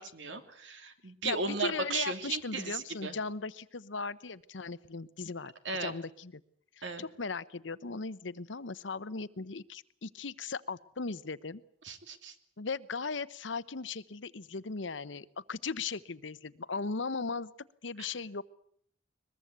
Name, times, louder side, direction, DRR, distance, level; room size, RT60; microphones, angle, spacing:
voice 1, 0.0-3.1 5.6-5.9 6.8-7.1 11.8-12.3 18.0-18.1, right 4 dB, 75° right, 7 dB, 2.8 m, -36 dB
voice 2, 1.2-5.5 5.8-6.4 6.8-11.6 12.6-17.5 17.8-18.4, left 4 dB, 80° left, 16 dB, 0.9 m, -38 dB
22.0 x 22.0 x 8.1 m, 0.64 s
head